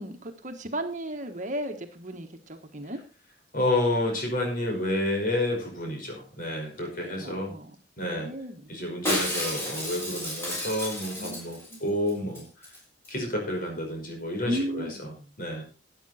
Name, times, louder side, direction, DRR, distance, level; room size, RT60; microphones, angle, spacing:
voice 1, 0.0-3.0 7.2-7.8 8.0-8.7 11.2-11.4 11.7-11.8 14.4-15.3, equal, 45° right, 6 dB, 1.5 m, -35 dB
voice 2, 3.5-7.5 8.0-8.3 8.7-12.4 13.1-14.9 15.4-15.6, left 1 dB, 50° left, 2 dB, 5.4 m, -29 dB
Shatter, 9.1-11.8 12.1-12.2 12.4-12.8 13.0-13.1, left 1 dB, 15° left, 6.3 m, -32 dB
13.0 x 9.2 x 4.2 m, 0.33 s
head